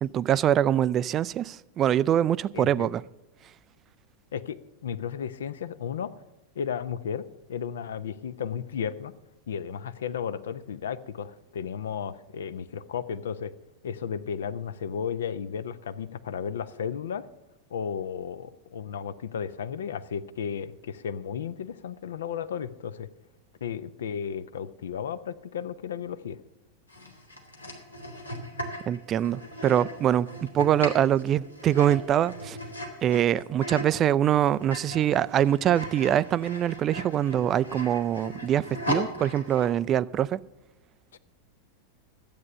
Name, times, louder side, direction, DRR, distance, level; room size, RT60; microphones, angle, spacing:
voice 1, 0.0-3.0 28.9-32.6 33.0-40.4, right 10 dB, 30° right, 0.3 m, -24 dB
voice 2, 2.5-2.9 4.3-6.1 6.6-9.1 9.5-13.5 13.8-17.3 17.7-23.1 23.6-26.4 41.1-41.2, left 7 dB, 65° left, 0.6 m, -34 dB
sound 1, 26.9-34.0 34.4-39.8, equal, 80° left, 1.9 m, -38 dB
12.0 x 8.6 x 6.7 m
figure-of-eight pair, 90°, 0 cm